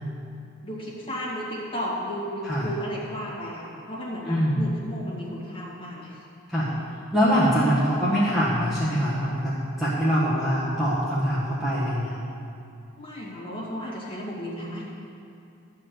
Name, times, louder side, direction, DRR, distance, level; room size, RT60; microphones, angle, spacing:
voice 1, 0.6-6.2 13.0-14.8, equal, 25° left, -7 dB, 2.1 m, -34 dB
voice 2, 4.3-4.6 6.5-6.7 7.1-9.5 9.8-12.1, equal, ahead, -10 dB, 1.4 m, -23 dB
12.0 x 4.7 x 7.8 m, 2.5 s
head